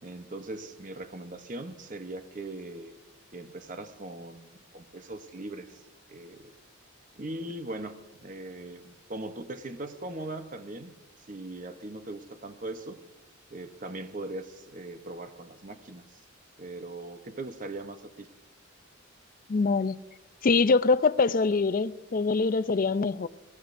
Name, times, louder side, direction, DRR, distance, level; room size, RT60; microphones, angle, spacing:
voice 1, 0.0-3.0 3.3-5.8 6.1-6.5 7.1-10.9 11.3-13.0 13.5-16.2 16.6-18.3, right 2 dB, 40° right, 0.8 m, -40 dB
voice 2, 19.5-20.0 20.4-23.3, left 4 dB, 40° left, 0.4 m, -24 dB
24.5 x 15.5 x 2.6 m
head